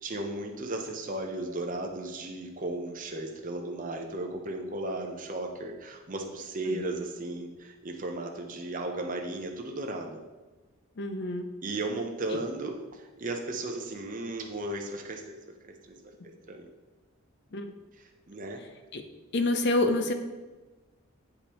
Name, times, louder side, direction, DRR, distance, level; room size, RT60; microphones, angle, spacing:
voice 1, 0.0-10.2 11.6-15.5 15.8-16.0 16.2-16.7 18.0-18.6, right 2 dB, 40° right, 2 dB, 0.7 m, -35 dB
voice 2, 11.0-11.5 17.5-17.7 18.9-19.0 19.3-20.1, left 2 dB, 55° left, 7 dB, 0.6 m, -27 dB
8.5 x 5.1 x 3.0 m, 1.2 s
head